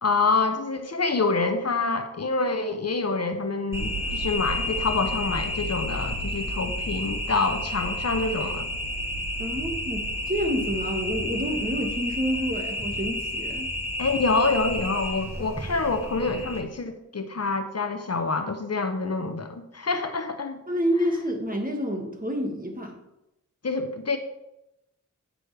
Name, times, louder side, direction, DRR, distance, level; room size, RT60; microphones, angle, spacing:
voice 1, 0.0-8.7 14.0-20.6 23.6-24.2, left 3 dB, 50° left, 7 dB, 0.8 m, -26 dB
sound 1, 3.7-16.6, left 1 dB, 10° right, 1.2 m, -31 dB
voice 2, 9.4-13.7 20.7-23.0, equal, 25° right, 2 dB, 1.6 m, -28 dB
9.2 x 6.1 x 3.3 m, 0.90 s
wide cardioid pair, 55°, 31 cm